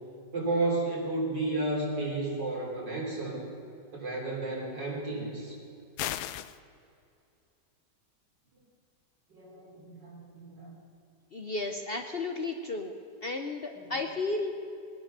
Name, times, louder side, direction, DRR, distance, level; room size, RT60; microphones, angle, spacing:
voice 1, 0.3-3.4 3.9-5.5 9.3-10.7 12.1-12.3 13.7-14.0, right 2 dB, 80° right, -2 dB, 4.2 m, -32 dB
sound 1, 6.0-6.6, left 12 dB, 75° left, 1.1 m, -34 dB
voice 2, 11.3-12.9 13.2-14.5, left 3 dB, 45° left, 4 dB, 0.8 m, -33 dB
20.0 x 10.0 x 6.7 m, 2.6 s
omnidirectional pair, 1.9 m